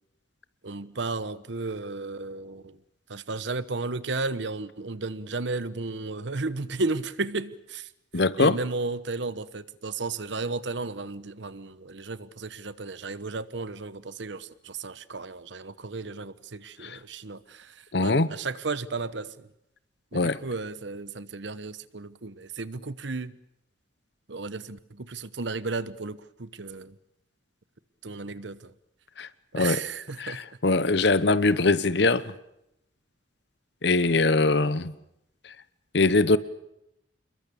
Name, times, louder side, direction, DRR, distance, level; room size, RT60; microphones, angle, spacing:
voice 1, 0.6-2.6 3.1-7.8 8.4-14.4 14.8-17.4 18.0-19.3 20.1-23.3 24.3-24.8 25.1-26.2 26.6-26.9 28.0-28.6 29.6-30.4, right 3 dB, 70° right, 1.0 m, -33 dB
voice 2, 8.1-8.6 17.9-18.3 20.1-20.4 29.2-29.3 29.5-29.8 30.2-32.2 33.8-34.9 35.9-36.4, left 3 dB, 60° left, 1.0 m, -22 dB
27.5 x 22.0 x 7.0 m
head